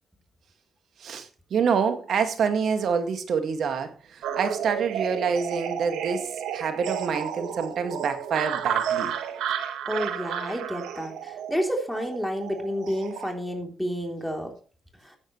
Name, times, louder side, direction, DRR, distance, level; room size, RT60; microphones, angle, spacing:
voice 1, 1.0-9.2, right 6 dB, 65° right, 7 dB, 2.1 m, -27 dB
sound 1, 4.2-13.3, right 9 dB, 85° right, 1.4 m, -32 dB
voice 2, 9.8-14.5 15.0-15.2, equal, ahead, 2 dB, 3.4 m, -30 dB
14.0 x 9.6 x 3.2 m, 0.38 s
supercardioid pair, 60°, 0 cm